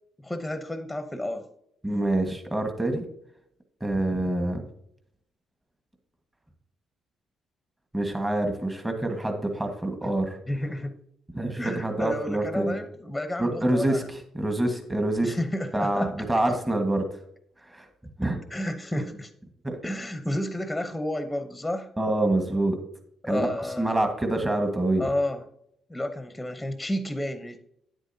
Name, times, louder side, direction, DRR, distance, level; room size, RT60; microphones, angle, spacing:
voice 1, 0.2-1.5 10.0-10.1 10.5-10.9 11.6-14.1 15.2-16.1 18.5-19.3 19.8-21.9 23.2-23.9 25.0-25.4 25.9-27.6, left 1 dB, 5° left, 9 dB, 0.9 m, -31 dB
voice 2, 1.8-3.0 3.8-4.6 7.9-10.4 11.3-12.8 13.4-15.4 15.7-17.0 17.6-17.9 18.2-18.4 19.6-19.8 22.0-22.8 23.2-23.5 23.8-25.0, right 1 dB, 15° right, 4 dB, 1.5 m, -26 dB
9.5 x 8.1 x 2.8 m, 0.73 s
supercardioid pair, 75°, 0 cm